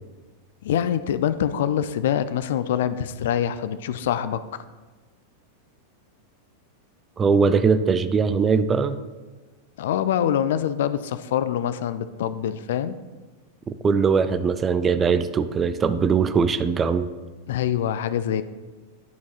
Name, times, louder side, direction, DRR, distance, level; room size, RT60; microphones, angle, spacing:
voice 1, 0.6-4.6 9.8-12.9 17.5-18.4, left 9 dB, 55° left, 13 dB, 0.3 m, -25 dB
voice 2, 7.2-9.0 13.7-17.1, right 5 dB, 20° right, 10 dB, 0.4 m, -21 dB
11.0 x 4.6 x 2.8 m, 1.3 s
figure-of-eight pair, 90°, 0 cm